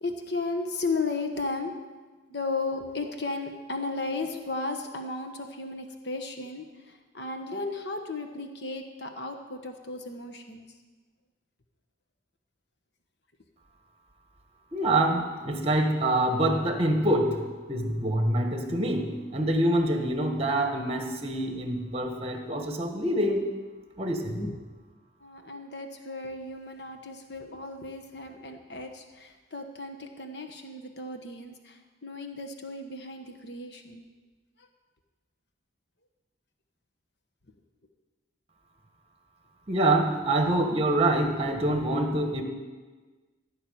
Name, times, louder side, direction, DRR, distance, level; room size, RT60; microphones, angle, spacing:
voice 1, 0.0-1.7 2.3-10.6 24.3-24.6 25.2-34.0 34.6-34.7, left 3 dB, 60° left, 5 dB, 1.2 m, -35 dB
voice 2, 14.7-17.4 17.7-23.4 24.0-24.4 39.7-42.4, right 1 dB, 30° right, 4 dB, 1.5 m, -25 dB
16.0 x 6.0 x 9.4 m, 1.3 s
head